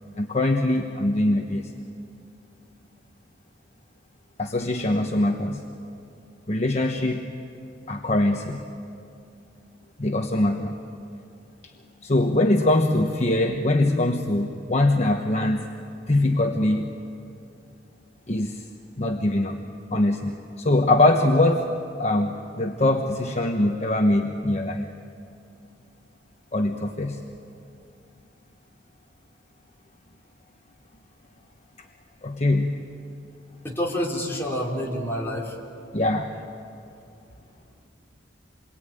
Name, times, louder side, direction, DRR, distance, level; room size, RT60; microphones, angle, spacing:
voice 1, 0.2-1.7 4.4-5.6 6.5-7.3 7.9-8.6 10.0-10.8 12.0-15.6 15.9-16.9 18.3-18.6 19.0-19.6 19.9-24.9 26.5-27.2 32.2-32.8 35.9-36.4, left 1 dB, 35° left, 3 dB, 1.2 m, -22 dB
voice 2, 33.6-35.6, equal, 15° left, -4 dB, 4.2 m, -28 dB
28.0 x 22.5 x 9.1 m, 2.6 s
head